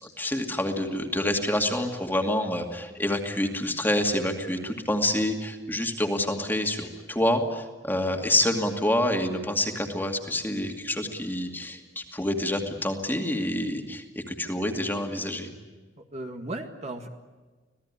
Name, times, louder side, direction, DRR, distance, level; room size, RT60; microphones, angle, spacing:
voice 1, 0.0-15.5, left 1 dB, 10° left, 3 dB, 2.4 m, -27 dB
voice 2, 16.0-17.1, right 2 dB, 40° right, 4 dB, 1.9 m, -36 dB
26.5 x 17.5 x 9.9 m, 1.3 s
head